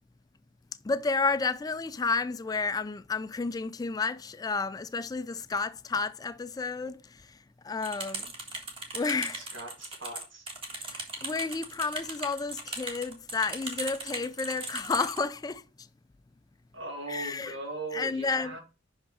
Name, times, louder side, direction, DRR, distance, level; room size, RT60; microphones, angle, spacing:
voice 1, 0.8-7.4 7.6-8.3 8.9-9.5 10.7-15.6 17.1-17.6 17.9-18.6, left 4 dB, 20° left, 0.3 m, -31 dB
sound 1, 7.8-15.2, right 2 dB, 30° right, 1.6 m, -38 dB
voice 2, 9.4-10.5 16.7-18.6, right 2 dB, 75° right, 2.3 m, -39 dB
5.7 x 5.2 x 4.3 m
head